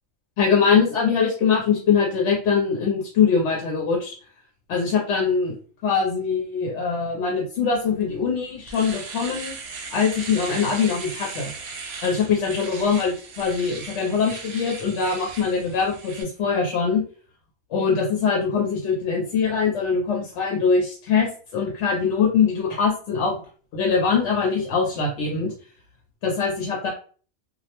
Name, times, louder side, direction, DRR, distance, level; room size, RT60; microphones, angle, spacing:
voice 1, 0.4-4.1 4.7-5.6 5.8-9.6 9.9-11.5 12.0-17.0 17.7-23.3 23.7-25.5 26.2-26.9, left 5 dB, 80° left, -1 dB, 0.9 m, -22 dB
Domestic sounds home sounds, 8.0-8.1 8.5-16.2, right 4 dB, 70° right, 0.8 m, -37 dB
2.3 x 2.1 x 2.8 m, 0.40 s
omnidirectional pair, 1.2 m